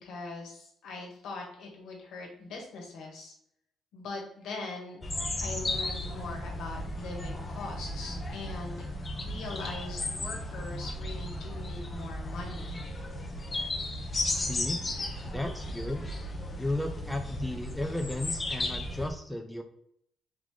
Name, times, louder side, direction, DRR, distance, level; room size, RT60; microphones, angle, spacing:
voice 1, 0.0-3.3 3.9-5.0 5.4-8.8 9.2-12.8, left 3 dB, 75° left, 0 dB, 1.3 m, -41 dB
sound 1, 5.0-19.1, left 1 dB, 30° left, 0.8 m, -35 dB
voice 2, 14.3-14.8 15.2-16.1 16.6-19.6, left 1 dB, 5° left, 5 dB, 0.5 m, -34 dB
3.7 x 3.0 x 3.7 m, 0.72 s
supercardioid pair, 65°, 0 cm